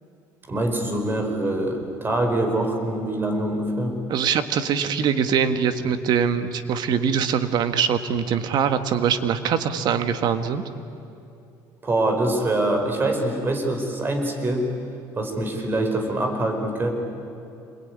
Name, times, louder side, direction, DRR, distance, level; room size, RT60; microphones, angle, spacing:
voice 1, 0.5-3.9 11.8-14.7 15.2-16.9, right 1 dB, 25° right, 4 dB, 4.8 m, -24 dB
voice 2, 4.1-10.6, right 7 dB, 55° right, 9 dB, 1.7 m, -23 dB
27.0 x 22.0 x 9.7 m, 2.7 s
cardioid pair, 125°, 8 cm